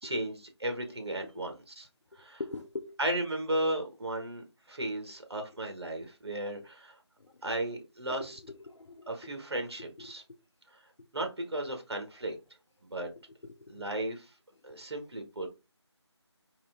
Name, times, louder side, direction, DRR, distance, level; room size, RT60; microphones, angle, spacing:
voice 1, 0.0-1.9 2.2-2.4 3.0-6.9 7.4-8.4 9.1-10.2 11.1-12.3 12.9-13.1 13.7-14.3 14.6-15.5, right 1 dB, 60° right, 1.4 m, -35 dB
voice 2, 2.1-3.0 4.9-5.0 7.2-7.3 8.1-10.1 13.4-13.9 14.7-14.8 15.4-15.5, left 3 dB, 80° left, 0.6 m, -44 dB
4.1 x 2.7 x 3.6 m
figure-of-eight pair, 170°, 15 cm